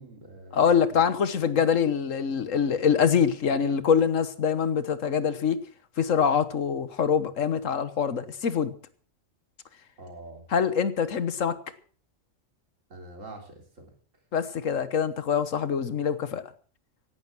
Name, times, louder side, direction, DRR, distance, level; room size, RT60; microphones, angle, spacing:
voice 1, 0.0-1.0 10.0-10.5 12.9-13.9, right 2 dB, 85° right, 3 dB, 3.9 m, -45 dB
voice 2, 0.5-5.6 6.0-8.7 10.5-11.6 14.3-16.5, left 7 dB, 85° left, 13 dB, 1.6 m, -24 dB
17.0 x 11.5 x 6.1 m, 0.43 s
omnidirectional pair, 1.3 m